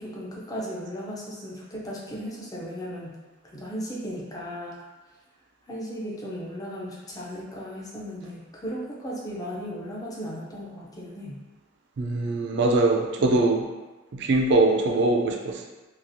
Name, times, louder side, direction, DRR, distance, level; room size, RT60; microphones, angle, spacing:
voice 1, 0.0-3.2 3.5-4.8 5.7-11.4 13.2-13.3, equal, 20° left, -4 dB, 0.5 m, -36 dB
voice 2, 12.0-13.6 14.1-15.7, right 2 dB, 60° right, 2 dB, 0.3 m, -22 dB
2.9 x 2.4 x 2.6 m, 1.2 s
head